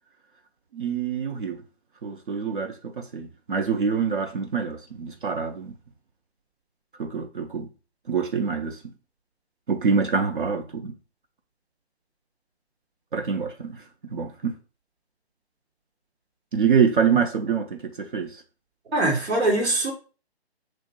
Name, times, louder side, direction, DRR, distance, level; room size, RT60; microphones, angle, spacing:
voice 1, 0.7-1.6 2.0-5.7 7.0-7.7 8.1-8.8 9.7-10.9 13.1-13.8 14.1-14.6 16.5-18.4, right 6 dB, 55° right, 0.5 m, -25 dB
voice 2, 18.9-19.9, right 2 dB, 80° right, 2.0 m, -22 dB
3.1 x 2.2 x 4.3 m
hypercardioid pair, 155°, 32 cm